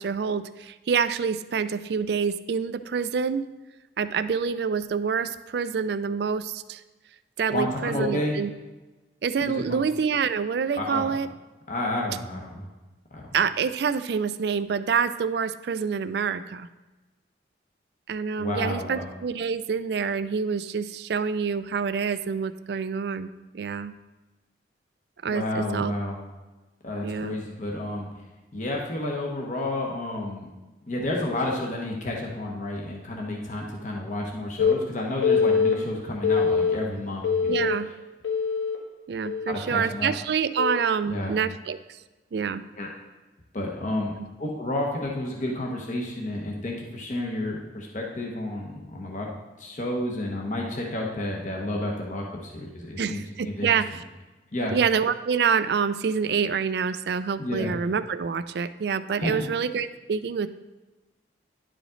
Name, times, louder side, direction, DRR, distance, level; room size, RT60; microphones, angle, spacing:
voice 1, 0.0-3.4 4.0-6.8 7.4-8.5 9.2-11.3 13.3-16.7 18.1-23.3 23.5-23.9 25.2-25.9 27.0-27.4 37.5-37.9 39.1-42.0 42.3-42.6 53.0-54.0 54.7-60.5, right 6 dB, 60° right, 13 dB, 0.3 m, -27 dB
voice 2, 7.5-8.4 9.4-9.8 10.8-11.1 11.7-12.7 13.1-13.2 18.4-19.0 25.3-26.2 26.8-28.1 28.5-30.5 30.9-37.7 39.5-40.1 41.1-41.3 42.8-42.9 43.5-44.1 44.4-49.3 49.6-53.7 54.5-54.7 57.4-57.7 59.1-59.5, left 1 dB, 40° left, -1 dB, 0.9 m, -31 dB
Telephone, 34.6-34.7 35.2-35.7 36.2-36.7 37.2-37.7 38.2-38.8 39.2-39.6 40.6-40.8, left 6 dB, 90° left, 1.3 m, -23 dB
10.5 x 5.0 x 3.8 m, 1.2 s
head